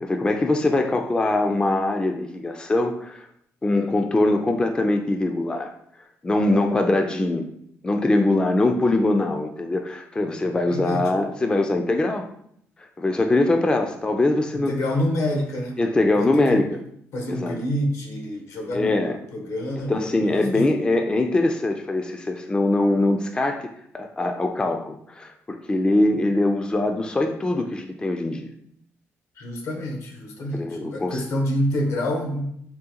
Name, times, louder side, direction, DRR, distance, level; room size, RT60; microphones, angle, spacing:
voice 1, 0.0-3.3 3.6-5.7 6.2-7.5 7.8-12.2 13.0-14.7 15.8-16.7 17.3-17.6 18.7-19.2 19.9-28.5 30.5-31.2, left 2 dB, 15° left, 5 dB, 0.3 m, -22 dB
voice 2, 10.7-11.0 14.5-15.8 16.2-16.7 17.1-20.7 29.4-32.5, equal, 75° left, 2 dB, 0.8 m, -27 dB
3.7 x 2.2 x 2.8 m, 0.70 s
cardioid pair, 85°, 5 cm